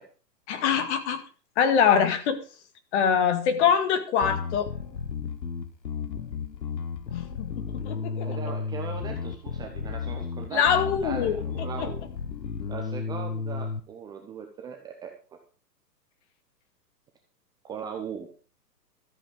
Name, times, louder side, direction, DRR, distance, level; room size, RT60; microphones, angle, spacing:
voice 1, 0.5-1.2 1.6-2.4 2.9-4.7 7.1-8.5 10.5-11.9, left 7 dB, 40° left, 8 dB, 2.1 m, -24 dB
Bass guitar, 4.2-13.8, left 6 dB, 85° left, 1.4 m, -33 dB
voice 2, 8.2-12.0 12.7-15.1 17.6-18.3, right 7 dB, 10° right, 3 dB, 0.6 m, -39 dB
13.5 x 7.6 x 5.1 m, 0.38 s
hypercardioid pair, 130°, 50 cm